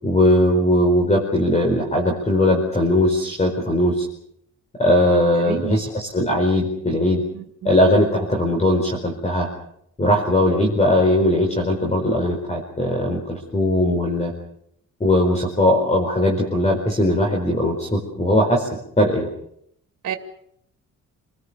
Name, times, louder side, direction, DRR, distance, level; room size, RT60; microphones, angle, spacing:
voice 1, 0.0-4.0 4.8-7.2 7.6-9.5 10.0-14.3 15.0-18.7 19.0-19.3, left 1 dB, 20° left, 1 dB, 4.7 m, -19 dB
voice 2, 5.5-5.8 7.3-7.7 20.0-20.2, right 8 dB, 65° right, 6 dB, 2.4 m, -29 dB
28.5 x 20.0 x 6.9 m, 0.72 s
cardioid pair, 130°, 31 cm